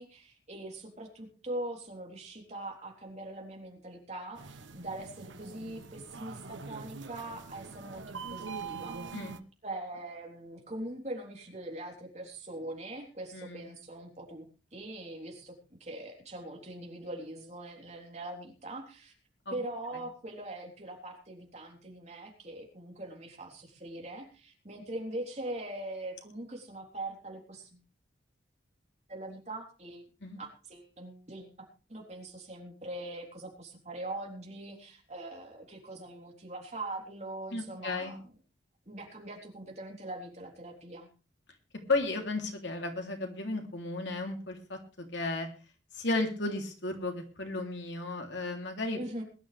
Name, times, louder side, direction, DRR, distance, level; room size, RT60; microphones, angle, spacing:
voice 1, 0.0-9.0 9.6-19.1 19.5-27.8 29.1-30.0 30.3-38.3 38.9-41.1 49.0-49.2, right 1 dB, 35° right, 1 dB, 3.7 m, -42 dB
sound 1, 4.3-9.4, right 4 dB, 85° right, 1.1 m, -43 dB
voice 2, 13.3-13.7 19.5-19.6 30.2-30.4 37.5-38.2 41.9-45.5 45.9-49.0, left 2 dB, 75° left, 3 dB, 3.2 m, -34 dB
21.5 x 11.5 x 3.4 m, 0.33 s
head